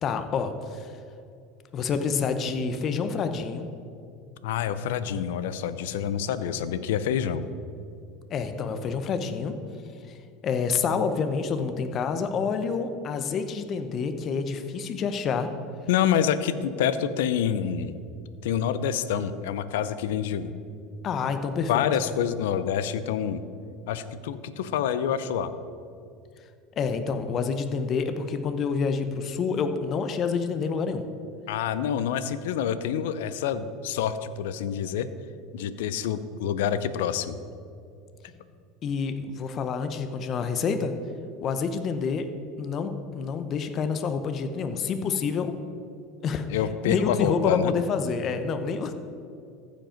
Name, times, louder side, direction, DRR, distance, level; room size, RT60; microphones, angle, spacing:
voice 1, 0.0-0.9 1.7-3.7 8.3-9.6 10.1-10.2 10.4-15.5 21.0-21.8 26.8-31.1 38.8-40.9 41.4-42.3 42.6-45.5 46.2-46.5 46.8-48.9, left 5 dB, 40° left, 8 dB, 0.8 m, -28 dB
voice 2, 4.4-7.4 15.9-18.0 18.4-20.6 21.7-23.4 23.9-25.5 31.5-35.1 35.5-37.4 46.5-47.7, left 9 dB, 80° left, 13 dB, 0.5 m, -27 dB
15.0 x 5.2 x 5.1 m, 2.5 s
supercardioid pair, 110°, 0 cm